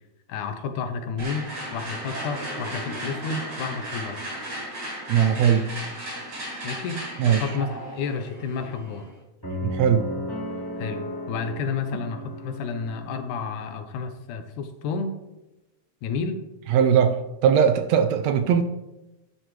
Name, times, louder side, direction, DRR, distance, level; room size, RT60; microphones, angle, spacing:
voice 1, 0.3-4.2 6.6-9.1 10.8-11.0 11.3-15.1 16.0-16.4, left 5 dB, 90° left, 2.5 m, -31 dB
sound 1, 1.2-9.1, right 1 dB, 55° right, 5.5 m, -35 dB
voice 2, 5.1-5.7 7.2-7.4 9.6-10.1 16.7-18.6, right 8 dB, 75° right, 1.7 m, -20 dB
sound 2, 9.4-13.6, left 1 dB, 5° left, 3.2 m, -35 dB
12.0 x 9.8 x 3.3 m
omnidirectional pair, 3.4 m